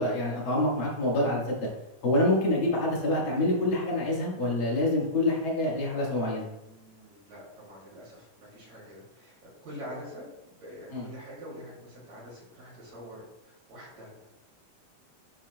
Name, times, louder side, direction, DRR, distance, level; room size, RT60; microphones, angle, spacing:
voice 1, 0.0-1.7 2.0-6.5 10.9-11.1, left 1 dB, 45° left, -4 dB, 2.1 m, -26 dB
voice 2, 6.4-9.4 9.6-14.1, equal, 55° right, -6 dB, 3.7 m, -45 dB
10.0 x 4.2 x 2.3 m, 0.88 s
omnidirectional pair, 3.7 m